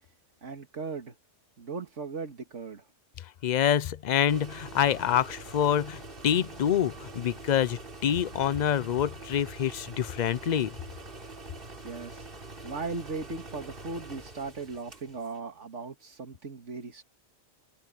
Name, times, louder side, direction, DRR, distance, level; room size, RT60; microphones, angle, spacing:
voice 1, 0.4-1.1 1.6-2.8 11.8-12.2 12.6-17.0, right 4 dB, 70° right, 2.3 m, -38 dB
voice 2, 3.4-10.7, left 9 dB, 55° left, 0.5 m, -26 dB
sound 1, 4.3-15.4, right 2 dB, 45° right, 3.2 m, -45 dB
omnidirectional pair, 1.3 m